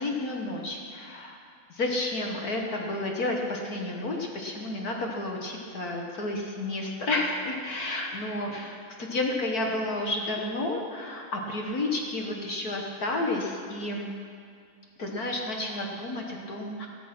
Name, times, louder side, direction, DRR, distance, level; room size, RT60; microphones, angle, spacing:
voice 1, 0.0-1.4 1.7-14.1 15.0-16.9, left 2 dB, 50° left, 0 dB, 1.1 m, -31 dB
15.0 x 15.0 x 6.0 m, 2.3 s
omnidirectional pair, 3.6 m